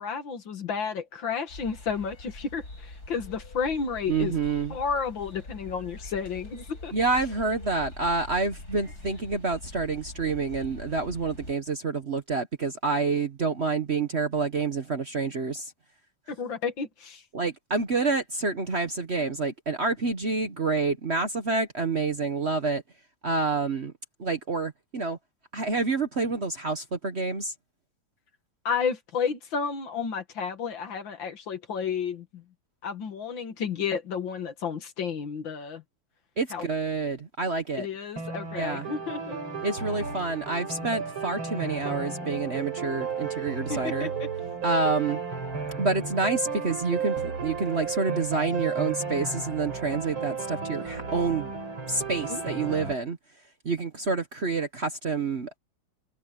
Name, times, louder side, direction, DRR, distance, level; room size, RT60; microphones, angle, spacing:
voice 1, 0.0-4.3 4.7-6.9 16.3-17.2 28.6-32.4 32.8-35.8 36.5-36.7 37.8-39.4 43.7-44.3 52.3-52.7, left 6 dB, 70° left, 2.5 m, -32 dB
sound 1, 1.5-11.5, left 2 dB, 50° left, 7.5 m, -43 dB
voice 2, 4.1-4.7 6.9-15.7 17.3-22.8 23.2-23.9 24.2-25.2 25.5-27.5 36.4-37.9 38.5-38.9 39.6-44.1 44.6-45.2 45.8-51.5 51.9-53.2 53.6-55.6, right 4 dB, 40° right, 1.2 m, -28 dB
sound 2, 38.2-52.9, right 5 dB, 80° right, 5.4 m, -33 dB
omnidirectional pair, 2.2 m